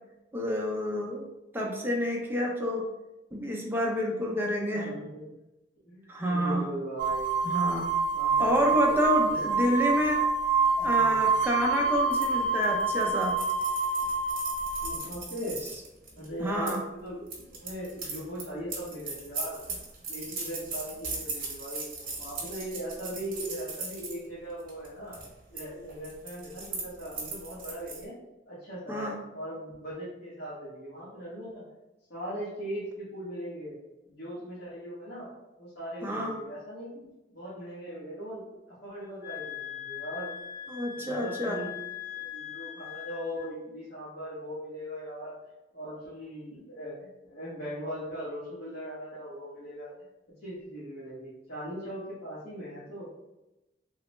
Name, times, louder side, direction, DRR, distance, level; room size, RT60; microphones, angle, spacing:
voice 1, 0.3-1.3 1.5-2.9 3.3-4.9 6.1-6.6 7.4-7.8 8.4-10.3 10.8-13.3 16.4-16.8 28.9-29.1 36.0-36.4 40.7-41.6, equal, 10° right, -1 dB, 0.5 m, -28 dB
voice 2, 4.1-5.3 5.8-7.7 8.1-9.0 9.3-9.7 10.8-11.2 14.8-15.6 16.1-17.3 17.6-19.6 20.1-21.9 22.2-25.2 25.5-28.2 28.5-31.7 32.1-33.8 34.1-35.3 35.6-40.3 40.9-41.7 42.1-45.4 45.7-49.9 50.4-53.1, equal, 60° left, -10 dB, 1.0 m, -39 dB
sound 1, 7.0-15.0, right 4 dB, 80° right, 0.3 m, -27 dB
sound 2, 12.1-16.8 17.3-24.1 24.6-24.9 25.1-25.6 25.9-28.0, right 4 dB, 50° right, 0.9 m, -38 dB
sound 3, 39.2-43.5, left 11 dB, 35° left, 1.3 m, -40 dB
3.2 x 2.0 x 3.0 m, 0.96 s
head